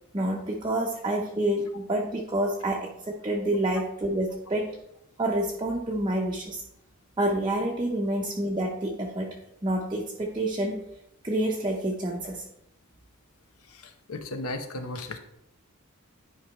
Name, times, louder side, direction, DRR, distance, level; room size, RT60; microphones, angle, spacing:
voice 1, 0.1-4.8 5.2-6.6 7.2-10.8 11.2-12.4, right 1 dB, 20° right, -2 dB, 0.7 m, -28 dB
voice 2, 13.7-15.2, left 2 dB, 80° left, 7 dB, 0.9 m, -36 dB
10.5 x 5.0 x 3.3 m, 0.82 s
head